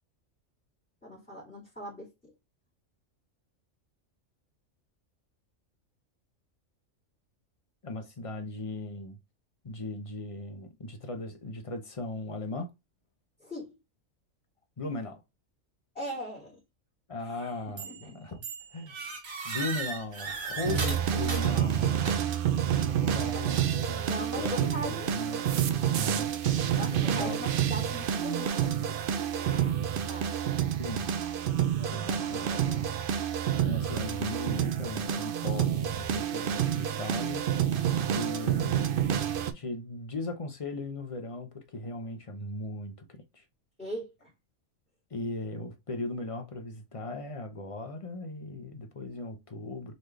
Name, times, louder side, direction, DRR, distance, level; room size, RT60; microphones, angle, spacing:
voice 1, 1.0-2.3 13.4-13.7 15.9-16.6 17.2-18.1 24.0-25.1 26.8-29.0 29.4-29.8 30.1-30.4 31.8-32.9 43.8-44.3, equal, 5° left, 2.1 m, -40 dB
voice 2, 7.8-9.2 9.6-12.7 14.8-15.2 17.1-18.4 18.7-18.9 19.4-22.1 22.8-24.1 24.3-24.5 25.1-25.5 26.0-26.3 26.8-27.4 30.8-31.1 31.9-32.6 33.6-37.6 38.1-39.2 39.5-43.4 45.1-49.9, left 2 dB, 35° left, 0.7 m, -38 dB
sound 1, 17.8-18.1 18.4-22.5, right 4 dB, 85° right, 1.7 m, -37 dB
sound 2, 20.6-39.5, right 9 dB, 60° right, 0.6 m, -28 dB
4.0 x 3.4 x 3.2 m
omnidirectional pair, 1.4 m